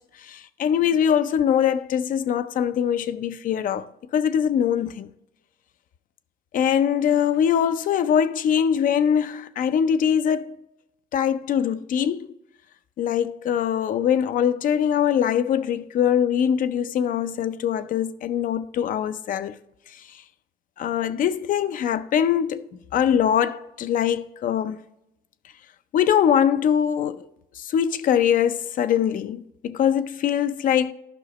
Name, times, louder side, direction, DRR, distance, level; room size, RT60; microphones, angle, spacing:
voice 1, 0.2-5.1 6.5-10.6 11.1-12.3 13.0-19.6 19.9-20.2 20.8-24.8 25.9-27.3 27.6-30.9, left 9 dB, 55° left, 0.5 m, -22 dB
11.0 x 5.7 x 3.0 m
cardioid pair, 110°, 17 cm